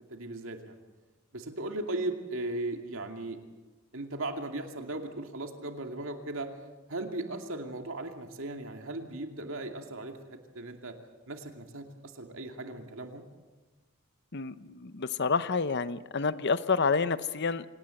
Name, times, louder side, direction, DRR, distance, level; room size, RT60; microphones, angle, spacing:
voice 1, 0.1-0.8 1.3-3.4 3.9-6.5 6.9-10.9 11.3-13.2, right 2 dB, 60° right, 4 dB, 2.6 m, -37 dB
voice 2, 14.3-17.7, left 4 dB, 50° left, 14 dB, 0.8 m, -29 dB
26.5 x 18.0 x 7.9 m, 1.2 s
head